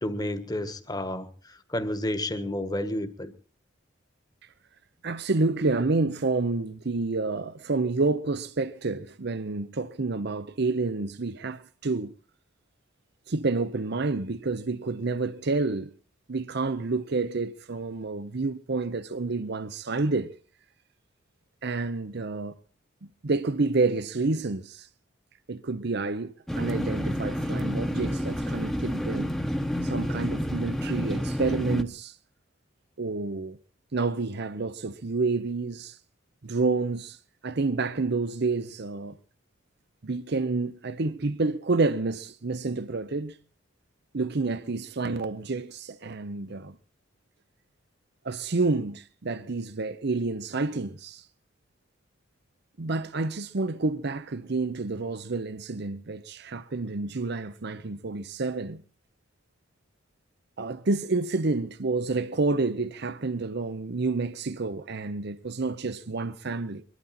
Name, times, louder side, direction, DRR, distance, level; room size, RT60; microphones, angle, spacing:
voice 1, 0.0-1.3 1.7-3.3, left 1 dB, 20° left, 1.5 m, -30 dB
voice 2, 5.0-12.1 13.3-15.9 16.3-20.3 21.6-22.5 23.0-24.9 25.5-29.4 29.8-32.2 33.0-33.6 33.9-36.0 36.4-37.2 37.4-39.2 40.0-43.4 44.1-46.8 48.2-51.2 52.8-58.8 60.6-66.8, right 3 dB, 60° right, 0.8 m, -29 dB
sound 1, 26.5-31.8, equal, ahead, 1.1 m, -29 dB
23.0 x 12.5 x 4.3 m
head